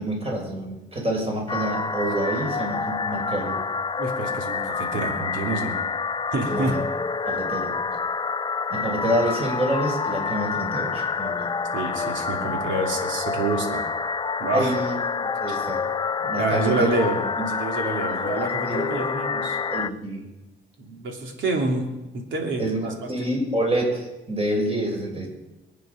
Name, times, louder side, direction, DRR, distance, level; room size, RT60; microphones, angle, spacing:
voice 1, 0.0-3.6 6.5-6.8 7.3-7.8 8.7-11.5 12.5-12.8 14.5-15.8 16.2-16.8 17.4-17.5 18.3-18.8 19.3-19.4 19.7-20.2 22.6-25.3, right 1 dB, 30° right, 0 dB, 5.7 m, -27 dB
sound 1, 1.5-19.9, left 5 dB, 25° left, 0.5 m, -28 dB
voice 2, 4.0-5.8 6.3-6.7 11.7-13.9 14.4-14.7 15.5-15.6 16.4-19.6 20.8-21.9 22.1-23.3, right 2 dB, 75° right, 2 dB, 3.0 m, -28 dB
23.0 x 9.2 x 5.2 m, 1.0 s
cardioid pair, 90°, 20 cm